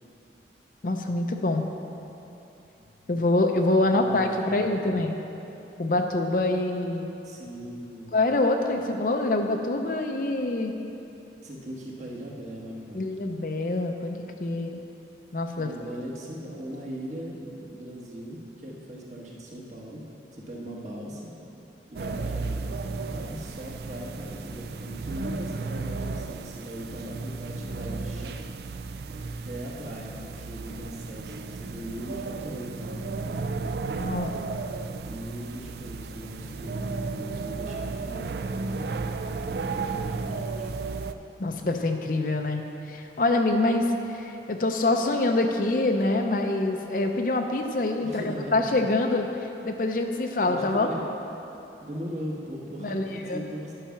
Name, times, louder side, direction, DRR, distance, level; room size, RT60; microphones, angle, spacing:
voice 1, 0.8-1.7 3.1-5.1 5.8-7.1 8.1-10.7 12.9-14.8 15.3-15.7 34.0-34.3 41.4-42.6 42.9-50.9 52.8-53.5, left 2 dB, 50° left, 4 dB, 0.5 m, -25 dB
voice 2, 2.8-3.1 3.9-5.0 7.2-8.1 11.4-13.1 15.5-20.1 20.3-21.3 21.9-22.6 23.1-28.5 29.2-34.4 35.0-38.9 39.5-40.7 48.0-48.7 50.5-51.0 51.8-53.7, equal, 40° right, -3 dB, 1.3 m, -39 dB
sound 1, 21.9-41.1, right 4 dB, 60° right, 0.3 m, -34 dB
10.0 x 5.7 x 5.7 m, 2.9 s
head